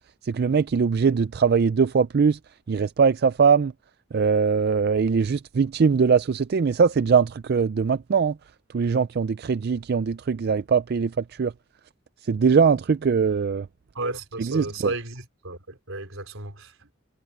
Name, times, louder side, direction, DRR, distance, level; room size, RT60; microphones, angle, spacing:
voice 1, 0.2-2.4 2.7-3.7 4.1-8.3 8.7-11.1 11.4-11.5 12.3-13.7 14.4-14.9, right 5 dB, 50° right, 0.4 m, -21 dB
voice 2, 13.9-16.9, right 2 dB, 80° right, 4.3 m, -34 dB
head